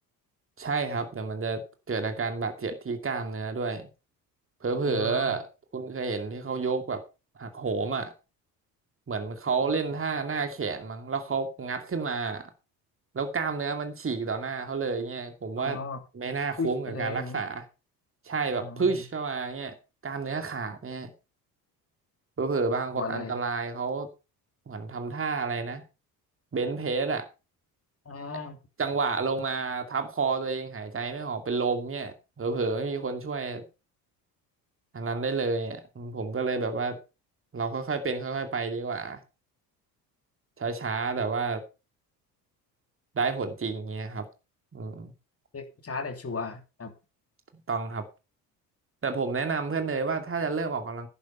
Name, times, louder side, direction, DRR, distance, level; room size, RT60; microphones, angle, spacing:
voice 1, 0.6-3.9 4.6-5.5 5.7-7.0 7.4-8.1 9.1-12.4 13.1-15.8 16.1-17.7 18.2-19.7 20.0-21.1 22.4-24.1 24.7-25.8 26.5-27.3 28.8-33.6 34.9-37.0 37.5-39.2 40.6-41.6 43.1-44.3 44.7-45.1 47.7-48.0 49.0-51.1, right 4 dB, 25° right, 2.4 m, -30 dB
voice 2, 4.9-5.4 9.6-9.8 15.6-16.0 16.6-17.4 18.5-19.0 22.9-23.4 28.0-28.6 45.5-46.9, left 4 dB, 30° left, 3.0 m, -36 dB
11.0 x 9.0 x 5.5 m
hypercardioid pair, 60°, 49 cm